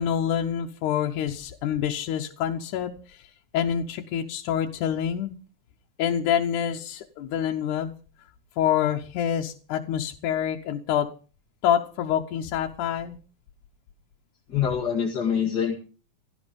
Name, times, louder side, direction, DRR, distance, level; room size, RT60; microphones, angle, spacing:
voice 1, 0.0-3.2 3.5-5.3 6.0-7.9 8.6-11.1 11.6-13.2, left 9 dB, 90° left, 3 dB, 2.5 m, -26 dB
voice 2, 14.5-15.8, left 7 dB, 35° left, 0 dB, 2.4 m, -25 dB
16.5 x 13.5 x 5.2 m, 0.37 s
omnidirectional pair, 3.4 m